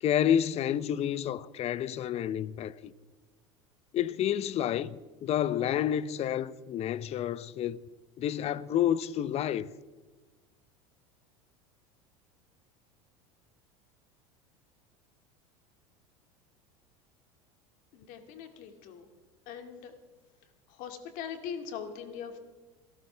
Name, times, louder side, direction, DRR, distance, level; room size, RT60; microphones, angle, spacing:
voice 1, 0.0-2.9 3.9-7.8 8.2-9.7, left 10 dB, 40° left, 0.7 m, -29 dB
voice 2, 17.9-19.1 19.5-19.9 20.7-22.4, left 7 dB, 60° left, 2.3 m, -41 dB
28.0 x 13.0 x 3.4 m
hypercardioid pair, 90°, 16 cm